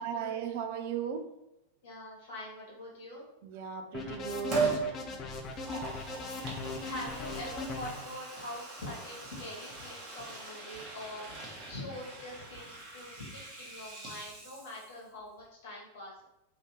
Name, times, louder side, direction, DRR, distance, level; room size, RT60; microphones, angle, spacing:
voice 1, 0.0-1.4 3.4-4.8, right 7 dB, 50° right, 6 dB, 0.3 m, -37 dB
voice 2, 1.8-3.3 6.8-16.2, left 1 dB, 55° left, -4 dB, 1.4 m, -44 dB
sound 1, 3.9-7.9, left 4 dB, 30° left, 0.5 m, -39 dB
Liquid, 4.5-4.9 5.4-15.1 15.4-15.5, right 4 dB, 30° right, 1.0 m, -39 dB
2.9 x 2.7 x 3.1 m, 0.89 s
figure-of-eight pair, 90°, 0 cm